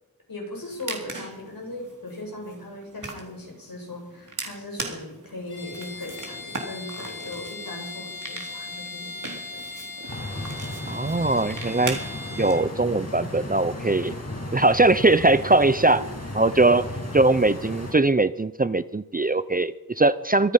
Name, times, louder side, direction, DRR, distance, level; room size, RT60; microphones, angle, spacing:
voice 1, 0.3-9.6 15.8-16.0 16.5-16.6, left 1 dB, 65° left, 0 dB, 7.2 m, -38 dB
sound 1, 0.5-12.5, right 3 dB, 55° right, 3.7 m, -40 dB
Bowed string instrument, 5.5-12.7, left 2 dB, 85° left, 4.2 m, -39 dB
Stream, 10.1-17.9, left 1 dB, 45° left, 6.1 m, -35 dB
voice 2, 10.8-12.0 12.4-14.1 14.5-16.0 16.3-16.8 17.1-20.5, right 2 dB, 25° right, 15 dB, 0.7 m, -20 dB
24.5 x 9.7 x 5.6 m, 0.98 s
cardioid pair, 45°, 37 cm